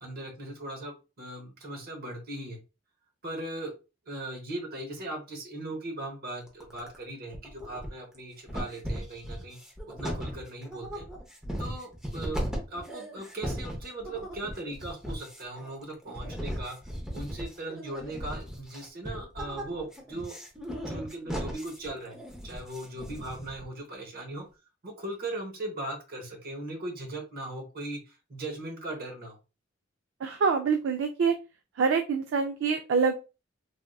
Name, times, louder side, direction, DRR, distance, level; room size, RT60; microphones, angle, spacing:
voice 1, 0.0-2.6 3.2-3.7 4.1-9.6 9.9-11.1 11.6-16.8 17.1-20.4 20.9-24.5 24.8-29.4, right 1 dB, 50° right, 2 dB, 0.9 m, -39 dB
sound 1, 6.5-7.0 7.3-8.2 8.5-23.6, equal, 5° right, 0.7 m, -37 dB
voice 2, 30.2-31.4 31.8-33.1, right 5 dB, 70° right, 6 dB, 0.4 m, -25 dB
3.4 x 2.5 x 2.3 m, 0.30 s
head